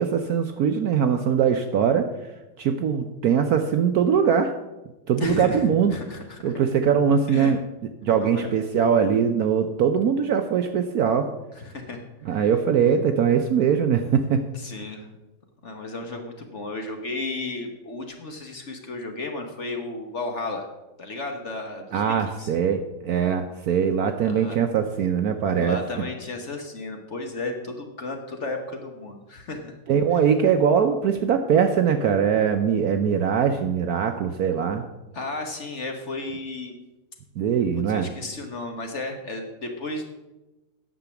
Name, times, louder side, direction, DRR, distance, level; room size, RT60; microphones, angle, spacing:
voice 1, 0.0-2.1 2.6-4.5 5.1-5.9 6.4-7.6 8.0-11.3 12.2-14.5 21.9-26.1 29.9-34.8 37.4-38.1, right 7 dB, 65° right, 7 dB, 1.0 m, -22 dB
voice 2, 5.2-6.5 7.3-7.5 8.1-8.5 11.5-12.4 14.5-15.0 15.6-20.7 21.0-22.0 22.4-22.5 24.2-24.6 25.6-29.7 30.1-30.2 35.1-36.8 37.9-40.1, left 2 dB, 45° left, 4 dB, 1.2 m, -33 dB
10.0 x 6.7 x 7.0 m, 1.0 s
omnidirectional pair, 2.1 m